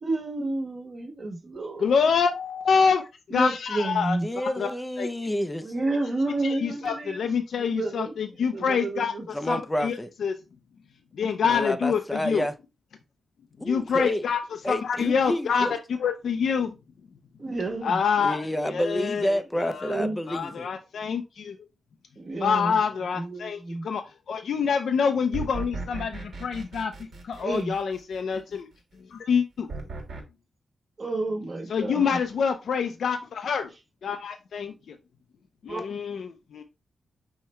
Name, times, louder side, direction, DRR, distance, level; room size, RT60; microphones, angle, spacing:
voice 1, 0.0-1.9 3.3-4.3 5.6-8.1 8.5-9.2 17.4-18.3 19.8-20.2 22.2-22.8 23.1-23.8 27.4-27.7 31.0-32.2 35.7-35.8, right 2 dB, 45° right, 1.3 m, -30 dB
voice 2, 1.8-3.0 3.3-4.2 4.6-4.7 5.0-5.1 6.4-9.1 9.5-9.9 10.2-10.3 11.2-12.4 13.7-14.4 14.7-15.7 16.0-16.7 17.8-18.5 18.7-19.3 19.6-20.0 20.3-21.6 22.4-23.6 23.8-24.0 24.3-26.9 27.2-28.7 29.1-29.7 31.7-33.7 34.0-34.7 35.6-36.6, left 6 dB, 75° left, 0.4 m, -26 dB
voice 3, 4.2-5.7 9.3-10.1 11.5-12.5 13.6-14.2 14.6-15.7 18.2-20.7, equal, 10° left, 0.4 m, -29 dB
sound 1, 25.3-28.2 29.7-30.2, right 3 dB, 65° right, 1.4 m, -36 dB
5.6 x 2.1 x 4.2 m
wide cardioid pair, 130°, 0 cm